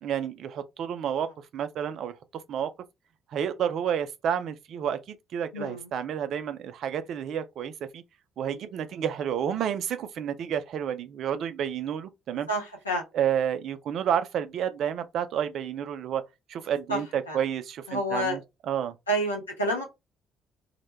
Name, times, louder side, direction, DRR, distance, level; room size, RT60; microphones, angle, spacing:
voice 1, 0.0-2.1 2.5-2.7 3.3-8.0 8.4-12.5 13.1-16.2 16.5-18.4 18.7-18.9, right 9 dB, 60° right, 0.3 m, -30 dB
voice 2, 5.5-5.9 12.5-13.0 16.9-17.0 17.3-17.4 17.9-18.4 19.1-19.8, right 1 dB, 90° left, 0.6 m, -28 dB
2.1 x 2.0 x 3.1 m
figure-of-eight pair, 45°, 0 cm